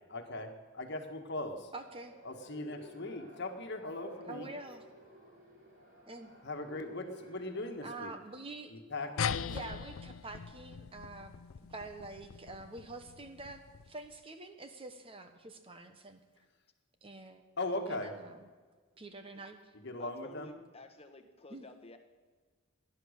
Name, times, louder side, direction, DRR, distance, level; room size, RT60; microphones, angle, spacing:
voice 1, 0.1-1.7 2.2-4.5 6.4-8.1 8.7-9.5 17.6-18.1 19.7-20.6, left 2 dB, 55° left, 5 dB, 1.6 m, -39 dB
voice 2, 1.7-2.1 4.3-4.9 6.1-6.3 7.8-8.7 9.5-11.3 11.7-16.2 17.0-17.4 17.9-18.5 19.0-19.6 21.5-21.7, right 2 dB, 25° right, 7 dB, 1.1 m, -46 dB
sound 1, 1.8-7.7, equal, 45° right, 4.3 m, -53 dB
sound 2, 9.2-14.1, left 7 dB, 75° left, 0.5 m, -40 dB
voice 3, 20.0-22.0, left 2 dB, 30° left, 6 dB, 1.3 m, -53 dB
17.0 x 11.0 x 6.6 m, 1.5 s
head